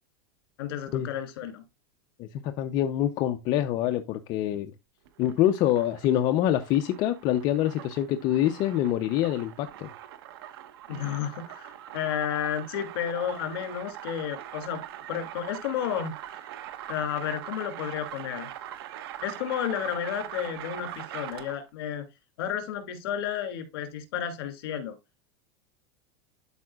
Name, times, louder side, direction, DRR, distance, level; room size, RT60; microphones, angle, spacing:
voice 1, 0.6-1.6 10.9-14.8 15.1-16.1 16.9-18.5 19.2-22.0 22.4-25.0, left 9 dB, 70° left, 2.5 m, -32 dB
voice 2, 2.2-4.7 5.2-9.9, left 12 dB, 35° left, 0.6 m, -25 dB
sound 1, 5.0-21.7, right 12 dB, 75° right, 0.9 m, -42 dB
12.5 x 4.8 x 2.3 m
supercardioid pair, 155°, 13 cm